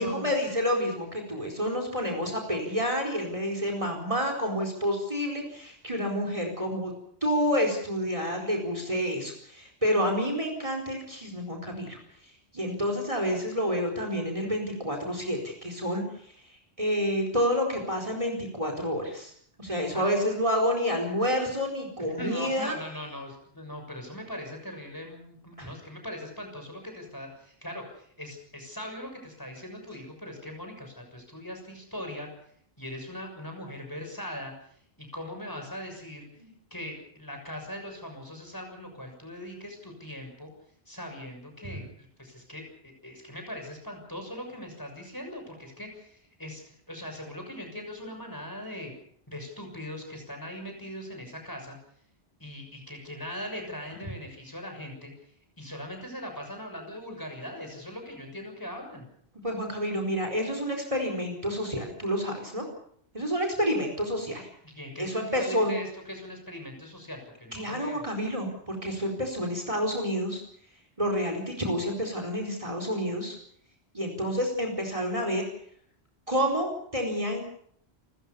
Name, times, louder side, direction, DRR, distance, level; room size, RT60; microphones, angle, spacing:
voice 1, 0.0-6.9 7.2-12.0 12.5-16.0 16.8-19.3 19.6-22.7 25.6-25.7 36.4-36.5 59.4-62.6 63.1-64.5 65.0-65.7 67.5-70.4 71.0-73.3 73.9-75.4 76.3-77.4, equal, 30° right, 3 dB, 4.5 m, -29 dB
voice 2, 22.2-32.3 32.8-36.3 36.7-40.5 40.9-48.9 49.3-51.8 52.4-55.3 55.6-59.1 64.6-68.1, equal, 20° left, 3 dB, 6.6 m, -40 dB
29.5 x 14.5 x 6.9 m, 0.65 s
omnidirectional pair, 1.1 m